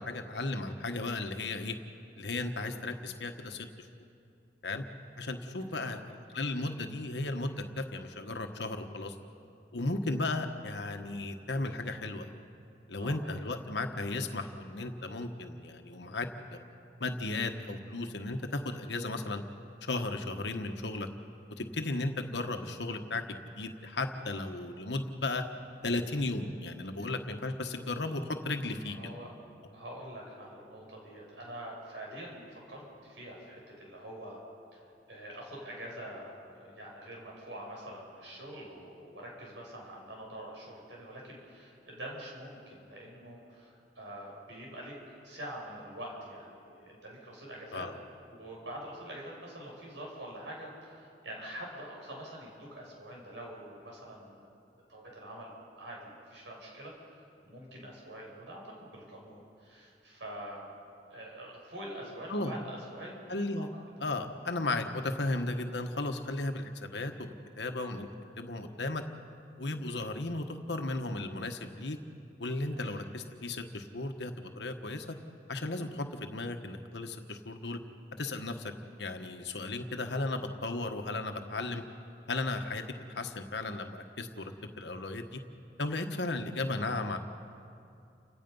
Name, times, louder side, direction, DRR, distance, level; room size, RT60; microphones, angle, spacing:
voice 1, 0.0-1.7 2.2-3.9 4.6-4.8 5.2-9.1 9.7-12.4 12.9-16.6 17.0-19.4 19.8-21.1 21.5-25.4 25.8-29.1 47.7-47.9 62.3-62.5 63.3-63.7 64.0-68.1 68.4-69.0 69.6-72.0 72.4-75.2 75.5-77.8 78.2-78.7 79.0-81.8 82.3-82.8 83.1-85.4 85.8-87.2, left 2 dB, 75° left, 6 dB, 1.3 m, -35 dB
voice 2, 13.0-13.4 27.0-27.1 28.8-29.3 29.7-34.4 34.7-34.8 35.1-47.9 48.3-54.5 54.9-55.5 55.8-56.9 57.4-60.7 61.1-63.6 64.0-64.1 64.4-64.5 72.6-73.1, right 1 dB, 85° right, -2 dB, 7.0 m, -45 dB
30.0 x 17.0 x 5.5 m, 2.6 s
head